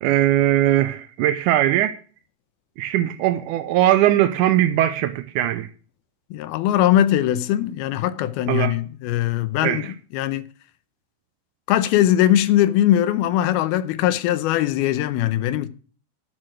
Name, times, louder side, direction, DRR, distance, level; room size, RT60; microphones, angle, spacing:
voice 1, 0.0-2.0 2.8-5.7 8.5-8.8 9.6-9.9, right 13 dB, 85° right, 1.8 m, -20 dB
voice 2, 6.3-9.9 10.1-10.4 11.7-15.7, left 12 dB, 85° left, 2.7 m, -20 dB
10.5 x 6.3 x 6.2 m
omnidirectional pair, 4.3 m